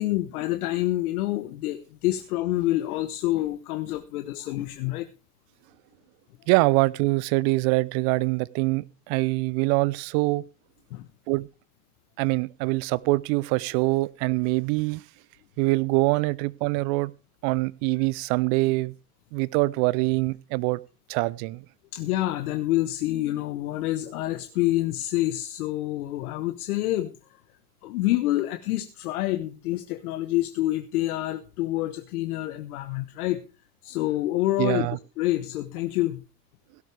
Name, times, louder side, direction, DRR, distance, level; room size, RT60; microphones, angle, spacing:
voice 1, 0.0-5.1 10.9-11.1 21.9-27.1 27.8-33.4 33.8-34.9 35.2-36.2, left 16 dB, 75° left, 1.1 m, -27 dB
voice 2, 6.5-10.4 11.3-11.5 12.2-15.0 15.6-17.1 17.4-18.9 19.3-20.8 21.1-21.6 34.6-35.0, right 23 dB, 60° right, 0.8 m, -24 dB
17.0 x 12.0 x 3.4 m
hypercardioid pair, 75°, 44 cm